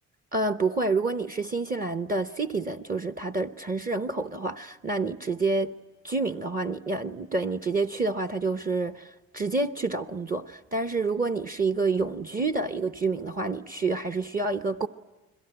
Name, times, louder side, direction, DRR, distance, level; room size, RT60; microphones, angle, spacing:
voice 1, 0.3-5.7 6.0-14.9, right 3 dB, 30° right, 0.9 m, -28 dB
30.0 x 21.5 x 9.0 m
cardioid pair, 90°, 30 cm